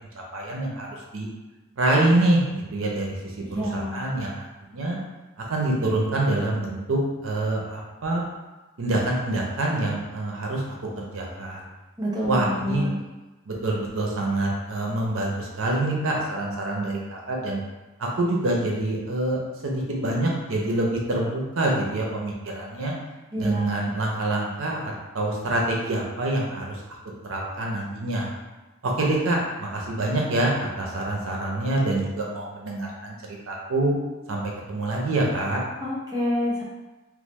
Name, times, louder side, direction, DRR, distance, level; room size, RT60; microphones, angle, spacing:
voice 1, 0.1-1.3 1.8-4.5 4.7-5.0 5.5-8.2 8.8-10.6 11.0-11.6 12.3-12.9 13.5-17.6 18.0-22.9 23.4-26.8 27.2-28.3 28.8-33.9 34.3-35.6, right 2 dB, 75° right, -1 dB, 0.6 m, -26 dB
voice 2, 3.4-4.0 12.0-13.0 23.3-23.8 35.8-36.6, equal, 20° right, -6 dB, 0.7 m, -27 dB
3.0 x 2.0 x 3.1 m, 1.1 s
head